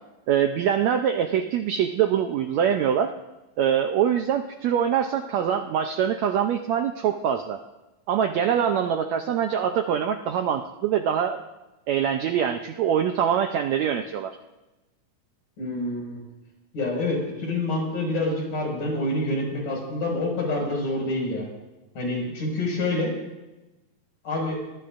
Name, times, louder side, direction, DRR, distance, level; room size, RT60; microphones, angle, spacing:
voice 1, 0.3-3.1 3.6-7.6 8.1-11.4 11.9-14.4, right 8 dB, 80° right, 6 dB, 1.6 m, -24 dB
voice 2, 15.6-16.2 16.7-21.5 22.0-23.1 24.2-24.6, left 2 dB, 70° left, -1 dB, 7.4 m, -27 dB
24.5 x 21.5 x 2.6 m, 1.1 s
omnidirectional pair, 3.9 m